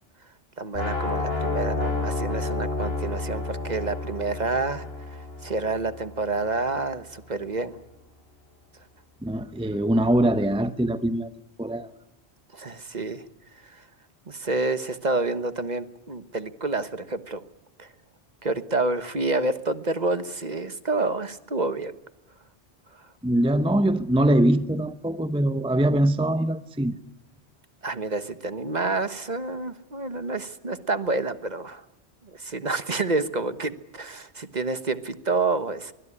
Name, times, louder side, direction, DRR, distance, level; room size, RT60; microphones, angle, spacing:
voice 1, 0.6-4.8 5.1-7.8 12.5-13.2 13.6-13.8 14.3-17.4 17.8-17.9 18.4-21.9 22.9-23.0 27.8-31.8 32.3-35.9, right 3 dB, 40° right, 12 dB, 1.3 m, -28 dB
sound 1, 0.7-6.7, left 2 dB, 60° left, 5.6 m, -30 dB
voice 2, 9.2-11.3 11.6-11.9 23.2-27.0, right 1 dB, 5° right, 12 dB, 0.7 m, -22 dB
24.0 x 21.0 x 10.0 m, 0.93 s
omnidirectional pair, 1.1 m